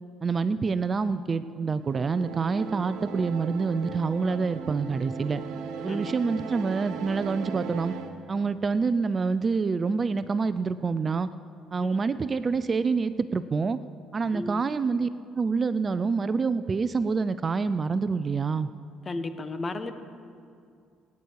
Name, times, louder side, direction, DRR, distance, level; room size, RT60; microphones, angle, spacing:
voice 1, 0.2-5.4 5.8-7.9 8.3-11.3 11.7-13.8 14.1-15.1 15.3-18.7, right 4 dB, 35° right, 14 dB, 0.5 m, -27 dB
sound 1, 1.8-8.1, right 6 dB, 80° right, 1.3 m, -38 dB
voice 2, 5.9-6.4 11.8-12.0 14.3-14.6 19.0-19.9, left 2 dB, 35° left, 9 dB, 1.2 m, -35 dB
24.0 x 9.6 x 4.7 m, 2.3 s
supercardioid pair, 85°, 0 cm